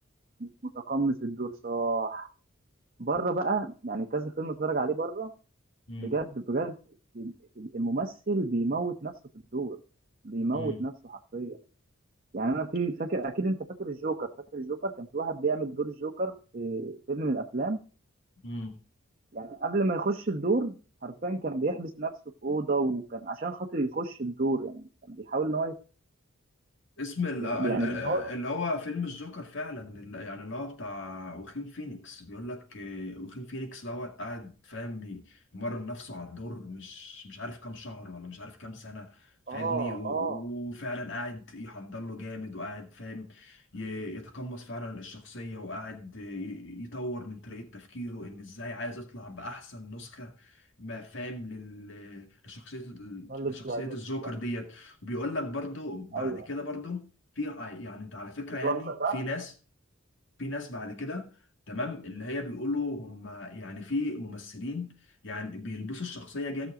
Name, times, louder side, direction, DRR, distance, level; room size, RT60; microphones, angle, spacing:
voice 1, 0.4-2.3 3.0-5.3 6.0-6.7 7.1-9.1 9.5-9.8 10.2-11.6 12.3-17.8 19.3-20.8 21.0-22.1 22.4-25.7 27.6-28.3 39.5-40.4 53.3-54.0 56.1-56.5 58.6-59.2, right 3 dB, 40° right, 1.0 m, -30 dB
voice 2, 18.4-18.8 27.0-57.1 57.4-59.5 60.4-61.3 61.7-64.9 65.2-66.7, left 2 dB, 60° left, 2.1 m, -37 dB
17.0 x 6.4 x 3.8 m
head